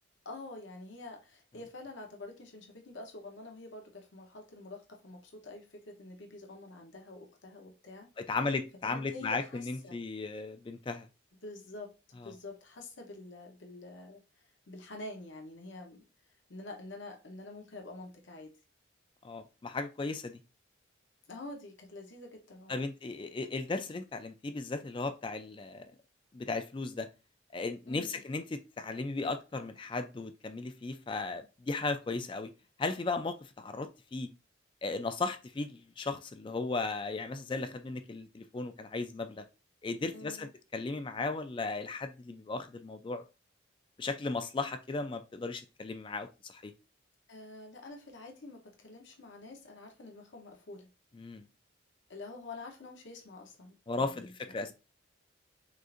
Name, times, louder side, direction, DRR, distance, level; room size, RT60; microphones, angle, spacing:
voice 1, 0.2-8.1 8.8-10.0 11.4-16.0 16.5-18.5 21.3-22.8 27.9-28.2 40.1-40.5 47.3-50.9 52.1-54.7, left 2 dB, 70° left, 0.9 m, -47 dB
voice 2, 8.2-11.1 12.2-12.3 19.2-20.4 22.7-25.9 26.3-27.1 27.5-32.5 32.8-34.3 34.8-39.4 39.8-43.2 44.0-46.7 51.2-51.5 53.9-54.7, left 3 dB, 25° left, 0.3 m, -36 dB
6.3 x 2.5 x 2.5 m
head